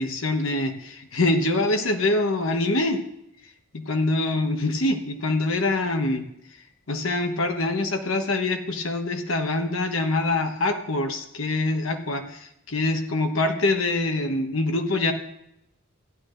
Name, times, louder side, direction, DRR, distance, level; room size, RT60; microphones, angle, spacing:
voice 1, 0.0-3.0 3.7-6.2 6.9-15.1, left 2 dB, 75° left, 6 dB, 1.2 m, -24 dB
15.0 x 11.0 x 2.6 m, 0.83 s
head